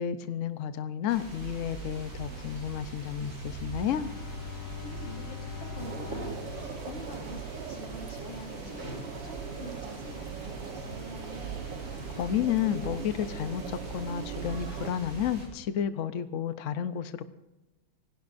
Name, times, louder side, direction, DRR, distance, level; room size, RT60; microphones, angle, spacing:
voice 1, 0.0-4.1 12.1-17.2, left 9 dB, 65° left, 11 dB, 0.7 m, -31 dB
sound 1, 1.1-15.5, right 4 dB, 50° right, 8.6 m, -41 dB
Bowed string instrument, 3.9-7.9, left 9 dB, 85° left, 1.6 m, -43 dB
voice 2, 4.5-11.0, left 1 dB, 45° left, -1 dB, 4.8 m, -46 dB
sound 2, 5.8-14.9, right 6 dB, 65° right, 1.9 m, -41 dB
26.5 x 18.5 x 2.6 m, 1.0 s
omnidirectional pair, 2.2 m